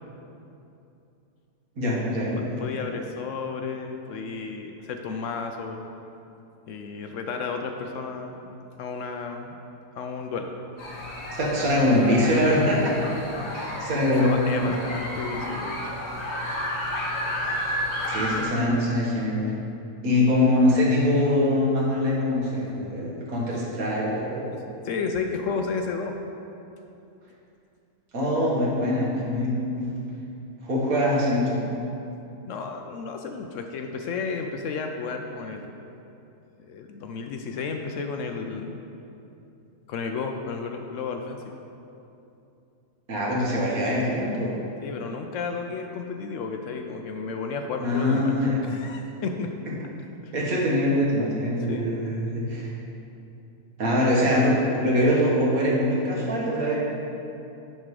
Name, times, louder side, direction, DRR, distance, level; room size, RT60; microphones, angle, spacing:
voice 1, 1.8-2.7 11.4-12.9 13.5-14.8 18.1-19.4 20.0-24.6 28.1-29.9 30.6-31.7 43.1-44.5 47.8-48.6 50.3-52.7 53.8-56.8, left 1 dB, 75° right, -5 dB, 1.9 m, -23 dB
voice 2, 2.4-5.9 6.7-8.4 8.8-9.6 10.0-10.5 14.1-15.9 18.2-18.5 24.8-26.1 32.5-35.6 36.6-38.8 39.9-41.4 44.8-48.3 48.6-49.5 50.2-50.3 51.7-51.9, left 5 dB, 70° left, 4 dB, 0.8 m, -32 dB
sound 1, 10.8-18.4, left 1 dB, 50° left, 1.4 m, -31 dB
10.5 x 3.7 x 4.8 m, 2.7 s
omnidirectional pair, 1.5 m